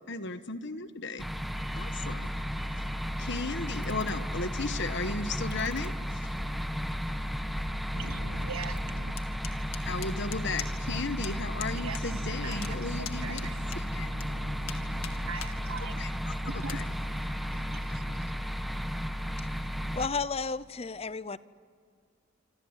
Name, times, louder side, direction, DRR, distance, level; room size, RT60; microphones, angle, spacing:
voice 1, 0.1-1.2 1.7-2.3 3.2-6.3 9.8-13.5 13.9-14.1 16.0-16.1 16.5-16.8, left 3 dB, 55° left, 11 dB, 1.2 m, -35 dB
sound 1, 1.2-20.1, equal, ahead, 1.0 m, -34 dB
sound 2, 3.7-5.9 6.3-10.3, equal, 20° right, 2.1 m, -46 dB
voice 2, 7.9-9.2 11.7-18.3, right 5 dB, 80° right, 11 dB, 1.2 m, -43 dB
sound 3, 9.2-10.9 11.2-11.3 11.6-12.0 12.3-14.3 14.7-15.5 16.0-16.1 16.6-16.8, left 10 dB, 80° left, 2.1 m, -41 dB
voice 3, 19.9-21.4, left 4 dB, 30° left, 17 dB, 0.6 m, -33 dB
27.0 x 26.0 x 8.2 m, 2.1 s
head